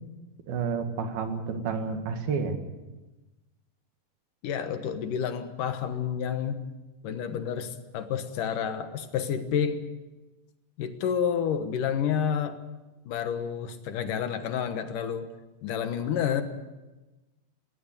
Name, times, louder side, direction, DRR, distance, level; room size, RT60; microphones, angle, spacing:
voice 1, 0.5-2.6, right 5 dB, 90° right, 6 dB, 3.9 m, -30 dB
voice 2, 4.4-6.7 7.0-9.8 10.8-12.6 13.1-15.3 15.6-16.4, left 8 dB, 70° left, 9 dB, 2.7 m, -29 dB
20.0 x 18.0 x 8.4 m, 1.1 s
omnidirectional pair, 4.2 m